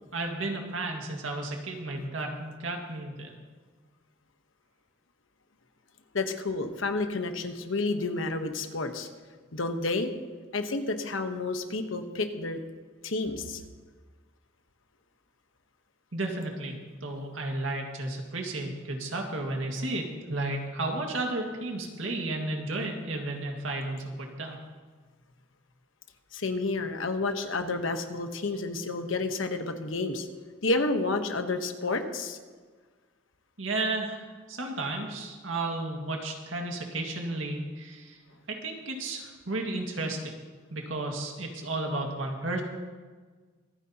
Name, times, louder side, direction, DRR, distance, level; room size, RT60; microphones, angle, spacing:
voice 1, 0.1-3.3 16.1-24.6 33.6-38.2 38.5-40.3 40.7-42.6, right 2 dB, 80° right, 1 dB, 2.0 m, -33 dB
voice 2, 6.1-9.1 9.5-10.1 10.5-12.6 13.0-13.6 26.3-30.3 30.6-32.4, left 3 dB, 85° left, 6 dB, 1.1 m, -30 dB
24.5 x 9.5 x 2.9 m, 1.4 s
head